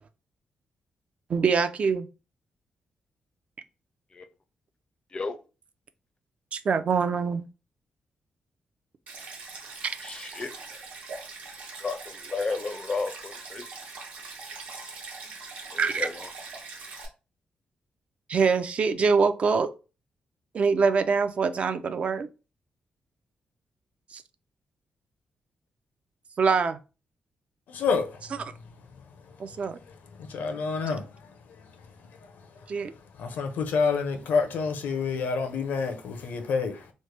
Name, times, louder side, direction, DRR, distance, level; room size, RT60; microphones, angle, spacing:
voice 1, 1.3-2.1 6.5-7.4 9.8-10.0 15.8-16.1 18.3-19.7 20.5-22.3 24.1-24.2 26.4-26.8 29.4-29.8 32.7-32.9, right 5 dB, 45° right, 0.3 m, -24 dB
Stream, 9.1-17.1, right 4 dB, 65° right, 0.9 m, -42 dB
voice 2, 10.0-10.5 11.8-13.6 16.0-16.1, left 4 dB, 30° left, 0.4 m, -32 dB
voice 3, 27.7-28.3 29.3-29.5 30.2-32.5 33.2-36.9, left 5 dB, 90° left, 0.6 m, -29 dB
3.1 x 2.1 x 3.2 m
cardioid pair, 115°, 3 cm